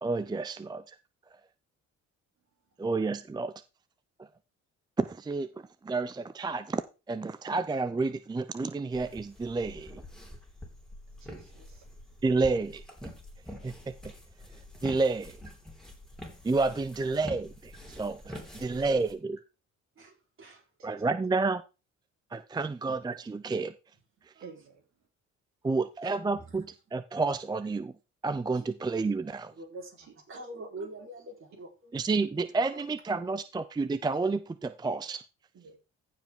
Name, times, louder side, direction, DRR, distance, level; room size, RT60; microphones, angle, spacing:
voice 1, 0.0-0.8 2.8-3.5 5.0-5.5 5.8-6.8 7.1-9.9 12.2-12.8 13.6-13.7 14.8-15.4 16.4-19.4 20.8-21.6 22.3-23.7 25.6-27.9 28.2-29.5 31.9-35.2, right 3 dB, 15° right, 0.5 m, -30 dB
sound 1, 8.9-19.1, equal, ahead, 3.2 m, -46 dB
voice 2, 11.2-11.9 18.7-19.0 20.8-21.0 24.4-24.8 28.5-28.6 30.0-30.1 35.5-35.8, right 4 dB, 65° right, 3.0 m, -51 dB
voice 3, 20.0-20.6 22.9-23.0 24.4-24.5 26.3-26.5 28.5-28.7 29.5-31.9 32.7-32.8 33.3-33.4, right 2 dB, 45° right, 3.9 m, -45 dB
15.0 x 5.0 x 3.7 m
cardioid pair, 90°, 30 cm